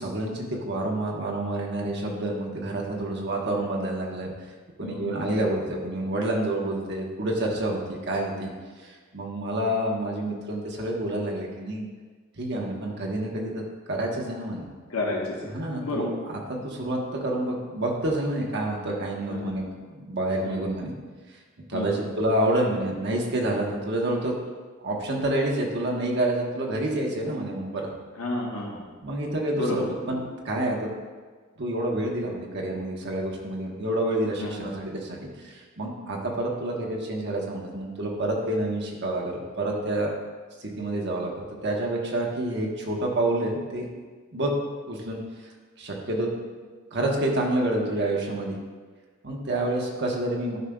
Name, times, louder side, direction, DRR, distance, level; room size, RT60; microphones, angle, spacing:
voice 1, 0.0-4.3 4.8-8.5 8.8-11.9 12.4-14.7 15.5-20.9 21.7-24.3 24.8-27.9 29.0-31.0 31.6-40.1 40.6-41.3 41.6-43.9 44.3-44.5 44.9-45.5 45.8-46.3 46.6-48.6 49.2-50.6, right 1 dB, 55° right, -1 dB, 1.1 m, -28 dB
voice 2, 4.8-5.2 14.9-15.5 15.8-16.1 19.3-19.5 20.4-20.6 21.7-22.0 28.2-28.8 29.6-29.8 34.4-34.7, left 2 dB, 85° left, -2 dB, 1.0 m, -31 dB
10.5 x 5.0 x 2.3 m, 1.4 s
head